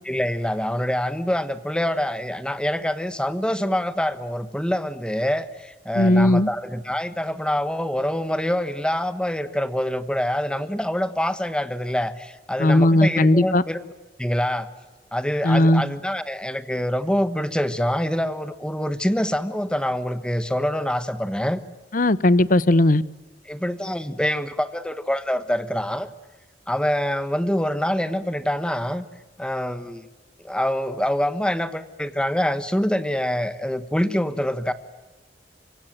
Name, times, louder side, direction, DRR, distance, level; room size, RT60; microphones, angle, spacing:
voice 1, 0.0-13.8 14.2-14.7 15.1-21.6 23.5-26.1 26.7-29.0 29.4-30.0 30.4-34.7, equal, 5° left, 12 dB, 1.2 m, -25 dB
voice 2, 5.9-6.5 12.6-13.6 15.4-15.8 21.9-23.0, left 1 dB, 50° left, 18 dB, 0.8 m, -17 dB
25.0 x 24.5 x 9.0 m, 1.1 s
head